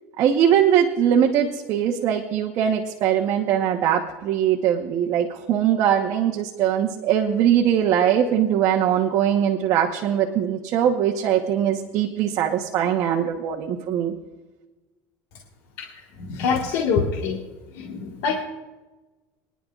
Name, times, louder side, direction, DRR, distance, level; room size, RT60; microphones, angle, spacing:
voice 1, 0.2-14.1, right 9 dB, 50° right, 2 dB, 1.0 m, -21 dB
voice 2, 15.8-17.4 17.7-18.4, left 5 dB, 75° left, -1 dB, 1.7 m, -25 dB
24.0 x 10.5 x 2.4 m, 1.2 s
cardioid pair, 145°, 8 cm